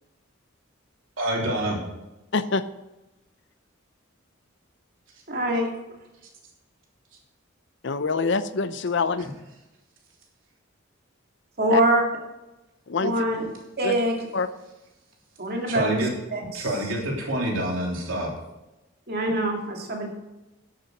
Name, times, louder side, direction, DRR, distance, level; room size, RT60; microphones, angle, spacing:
voice 1, 1.2-1.8 15.7-16.1 16.5-18.3, right 1 dB, 75° right, -1 dB, 3.2 m, -27 dB
voice 2, 2.3-2.6 7.8-9.3 11.7-11.8 12.9-13.3 13.8-14.0 14.3-14.5, left 4 dB, 60° left, 13 dB, 0.6 m, -25 dB
voice 3, 5.3-5.7 11.6-12.0 13.0-13.4 13.8-14.2 15.4-16.0 16.3-16.7 19.1-20.1, right 1 dB, 50° right, 0 dB, 2.5 m, -24 dB
11.0 x 8.4 x 6.5 m, 1.0 s
head